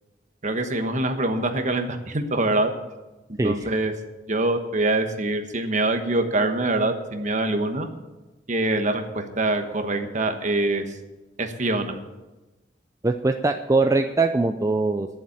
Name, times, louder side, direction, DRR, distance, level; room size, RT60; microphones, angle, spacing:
voice 1, 0.4-2.7 3.3-3.9 4.3-7.9 8.5-10.9 11.4-12.0, right 2 dB, 45° right, 6 dB, 1.2 m, -24 dB
voice 2, 13.0-15.1, right 3 dB, 20° right, 5 dB, 0.5 m, -22 dB
11.0 x 7.3 x 8.7 m, 1.1 s
head